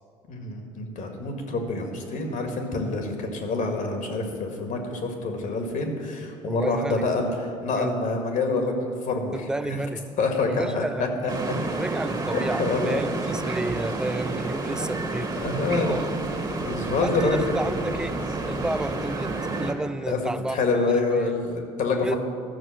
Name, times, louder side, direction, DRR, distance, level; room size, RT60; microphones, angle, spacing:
voice 1, 0.3-7.3 7.6-8.7 9.0-9.3 9.7-9.8 10.2-11.6 12.3-13.0 15.4-16.0 16.6-17.4 20.1-20.2 20.5-22.2, left 3 dB, 50° left, 3 dB, 1.9 m, -26 dB
voice 2, 6.5-7.1 7.7-7.9 9.3-10.1 10.5-11.2 11.8-16.1 17.0-18.2 18.5-21.3 22.0-22.1, right 1 dB, 5° right, 13 dB, 0.4 m, -31 dB
sound 1, 11.3-19.7, right 3 dB, 25° right, 1.7 m, -30 dB
12.5 x 6.6 x 7.3 m, 2.3 s
hypercardioid pair, 60°, 17 cm